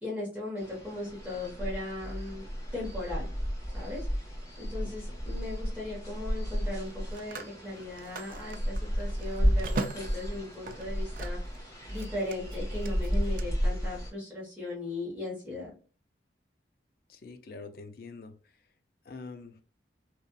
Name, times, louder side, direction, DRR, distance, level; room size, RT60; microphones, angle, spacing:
voice 1, 0.0-2.4 2.7-3.3 3.7-15.7, left 2 dB, 5° right, 1.0 m, -38 dB
sound 1, 0.6-14.1, equal, 15° left, 1.1 m, -33 dB
Telephone, 4.5-4.8 6.7-11.6 11.9-13.4, right 4 dB, 50° right, 0.3 m, -41 dB
voice 2, 4.8-5.2 17.1-18.7 19.0-19.6, left 3 dB, 55° left, 0.4 m, -46 dB
2.6 x 2.4 x 2.2 m
head